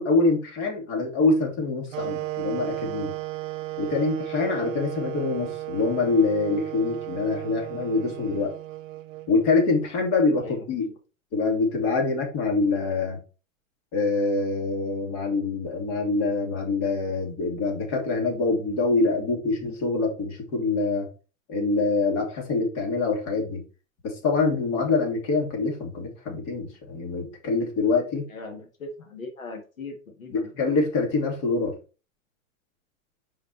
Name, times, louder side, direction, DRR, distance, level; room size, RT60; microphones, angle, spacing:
voice 1, 0.0-3.2 3.8-8.5 9.3-10.9 11.3-13.2 13.9-21.1 21.5-23.6 24.0-28.2 30.3-31.7, left 3 dB, 45° left, 2 dB, 2.6 m, -25 dB
sound 1, 1.9-9.9, right 16 dB, 70° right, 0.6 m, -35 dB
voice 2, 10.4-10.9 28.3-30.5, left 3 dB, 85° left, 4 dB, 1.7 m, -39 dB
5.3 x 5.1 x 4.4 m, 0.34 s
hypercardioid pair, 95°, 40 cm